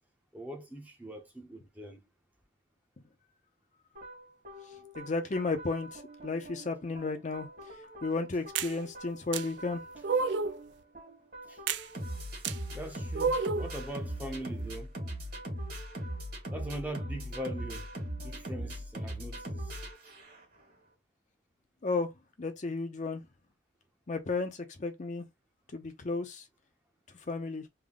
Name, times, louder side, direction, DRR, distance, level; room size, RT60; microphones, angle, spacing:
voice 1, 0.3-2.0 11.5-11.6 12.7-15.0 16.5-17.9 18.2-19.8, right 1 dB, 10° right, 0.7 m, -41 dB
sound 1, 4.0-20.6, equal, 50° right, 1.8 m, -41 dB
voice 2, 4.7-9.8 21.8-22.1 22.4-23.2 24.1-25.3 25.7-26.4 27.3-27.7, left 3 dB, 40° left, 0.6 m, -34 dB
sound 2, 8.6-8.7 9.3-9.4 10.0-10.6 11.7-11.8 12.4-12.6 13.2-13.7, right 5 dB, 65° right, 0.4 m, -29 dB
3.5 x 2.1 x 3.7 m
head